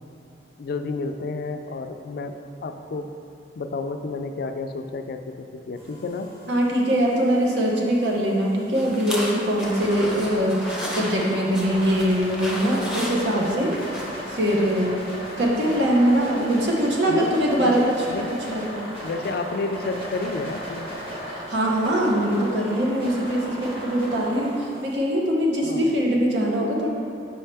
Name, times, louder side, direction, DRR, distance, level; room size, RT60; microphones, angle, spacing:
voice 1, 0.6-3.2 3.6-6.3 17.1-18.4 19.0-20.9 25.6-25.9, left 3 dB, 60° left, 7 dB, 0.3 m, -31 dB
sound 1, 5.8-25.0, equal, 35° right, 1.4 m, -36 dB
voice 2, 6.5-13.8 14.3-15.0 15.4-17.9 18.5-18.8 21.3-26.9, equal, 75° right, -2 dB, 0.9 m, -22 dB
sound 2, 8.7-14.1, equal, 5° right, 0.7 m, -34 dB
5.5 x 5.5 x 3.4 m, 2.7 s
head